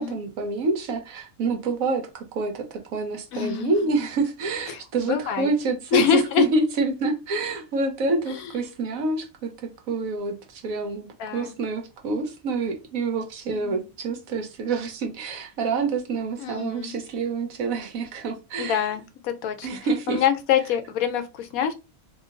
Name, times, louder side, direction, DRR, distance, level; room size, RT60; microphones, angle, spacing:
voice 1, 0.0-2.6 2.9-9.5 9.9-18.8 19.6-20.2, right 3 dB, 75° right, 1.2 m, -27 dB
voice 2, 3.3-3.7 4.7-5.5 5.9-6.4 8.3-8.5 11.0-11.5 13.5-13.9 16.4-16.9 18.6-19.7 20.1-21.7, left 8 dB, 80° left, 1.1 m, -25 dB
3.0 x 2.2 x 3.7 m
omnidirectional pair, 1.5 m